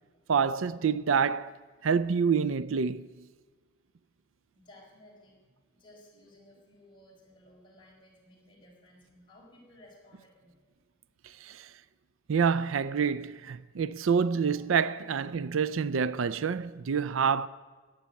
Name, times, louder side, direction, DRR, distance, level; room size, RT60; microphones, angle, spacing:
voice 1, 0.3-1.5 1.8-3.3 11.2-11.7 12.3-17.5, right 6 dB, 75° right, 0.5 m, -27 dB
voice 2, 4.5-10.8 11.4-11.5, left 1 dB, 25° left, 5.0 m, -57 dB
14.5 x 10.0 x 8.3 m
head